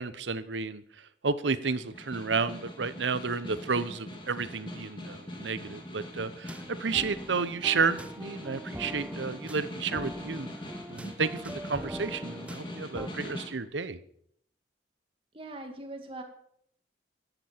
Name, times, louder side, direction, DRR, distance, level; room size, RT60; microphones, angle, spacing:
voice 1, 0.0-10.5 10.9-14.0, right 5 dB, 90° right, 15 dB, 0.9 m, -31 dB
Snare drum, 1.8-13.6, left 1 dB, 25° left, 2.3 m, -42 dB
sound 1, 6.5-13.1, right 1 dB, 5° right, 0.6 m, -42 dB
voice 2, 15.3-16.2, right 2 dB, 30° right, 4 dB, 2.0 m, -41 dB
13.5 x 9.1 x 7.3 m, 0.69 s
head